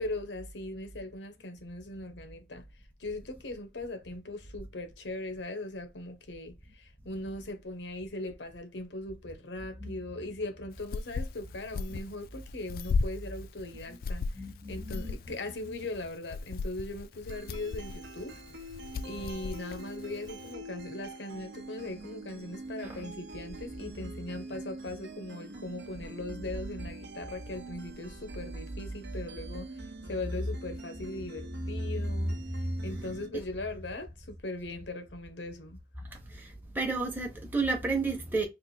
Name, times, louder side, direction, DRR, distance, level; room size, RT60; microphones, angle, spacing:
voice 1, 0.0-18.4 19.0-35.8, left 2 dB, 90° left, 0.9 m, -40 dB
sound 1, 10.7-20.5, left 4 dB, 55° left, 0.3 m, -36 dB
voice 2, 14.4-15.1 32.7-32.9 36.3-38.5, right 3 dB, 10° right, 0.8 m, -32 dB
sound 2, 17.3-33.3, right 2 dB, 75° right, 0.7 m, -45 dB
3.3 x 2.6 x 4.0 m
head